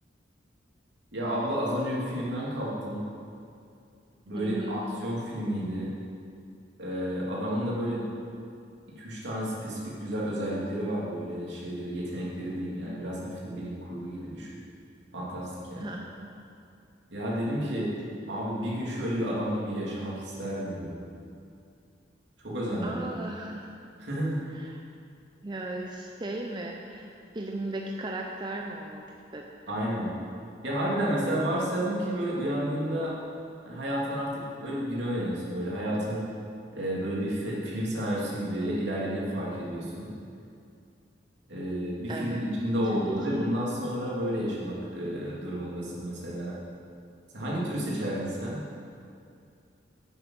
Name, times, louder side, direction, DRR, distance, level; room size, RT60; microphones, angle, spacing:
voice 1, 1.1-3.0 4.3-5.9 6.8-8.1 9.0-14.5 15.1-15.9 17.1-17.9 18.3-21.0 22.4-23.0 24.0-24.4 29.7-30.1 30.6-33.1 33.6-36.2 36.7-40.1 41.5-46.5 47.3-48.6, equal, 70° right, -6 dB, 2.8 m, -31 dB
voice 2, 4.3-4.8 15.8-16.3 17.6-17.9 22.8-23.7 24.5-24.8 25.4-29.0 29.3-29.8 42.1-42.4 42.9-43.3, right 2 dB, 25° right, 0 dB, 0.6 m, -36 dB
8.9 x 8.0 x 6.4 m, 2.5 s
head